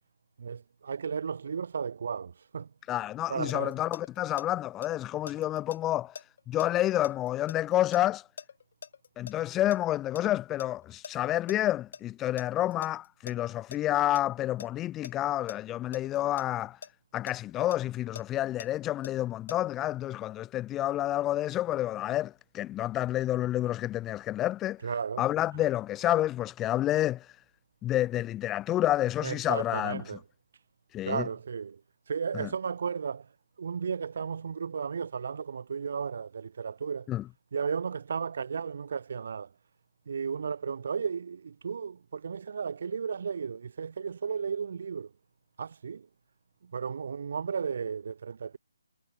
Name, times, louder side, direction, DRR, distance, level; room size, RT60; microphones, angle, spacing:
voice 1, 0.4-2.7 3.3-3.7 24.8-25.3 29.2-30.2 31.1-31.8 32.1-33.3 33.6-37.1 37.5-39.5 40.1-45.1 45.6-46.1 46.7-48.6, right 6 dB, 55° right, 3.4 m, -34 dB
voice 2, 2.9-6.1 6.5-8.2 9.2-16.8 17.1-24.8 25.2-27.2 27.8-30.0 30.9-31.3 32.3-32.5 37.1-37.2, left 14 dB, 15° left, 0.4 m, -29 dB
sound 1, 3.5-4.5 4.8-9.4 9.7-11.6 11.9-12.0 12.4-13.8 14.2-14.7 15.0-16.9 17.3-19.6, left 7 dB, 50° left, 2.7 m, -44 dB
hypercardioid pair, 160°, 0 cm